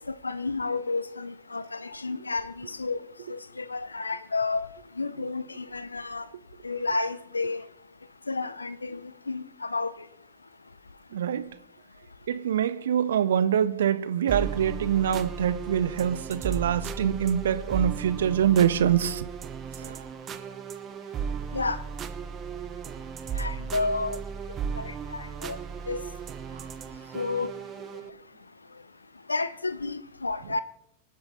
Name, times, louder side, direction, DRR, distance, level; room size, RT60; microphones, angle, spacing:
voice 1, 0.2-3.0 3.6-4.7 5.0-6.2 6.6-7.6 8.3-9.0 9.3-9.4 9.7-9.9 21.5-21.8 23.4-24.2 25.4-25.6 25.9-26.0 27.1-27.5 29.3-30.6, left 3 dB, 80° left, 0.6 m, -30 dB
voice 2, 11.1-11.5 12.3-19.3 19.8-20.0, right 9 dB, 60° right, 0.6 m, -25 dB
sound 1, 14.3-28.1, right 6 dB, 25° right, 0.9 m, -36 dB
25.5 x 8.7 x 4.1 m
figure-of-eight pair, 90°, 0 cm